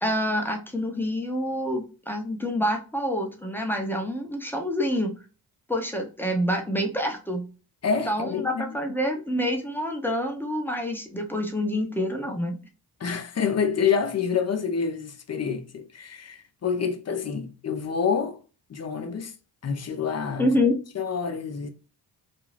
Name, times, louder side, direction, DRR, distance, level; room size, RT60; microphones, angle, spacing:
voice 1, 0.0-5.2 5.7-7.4 8.1-12.6 20.4-20.7, equal, 5° left, 0.7 m, -27 dB
voice 2, 7.8-8.6 13.0-18.4 18.7-19.3 19.6-20.5 21.0-21.7, left 6 dB, 40° left, 0.6 m, -27 dB
2.5 x 2.3 x 3.1 m
cardioid pair, 65°, 43 cm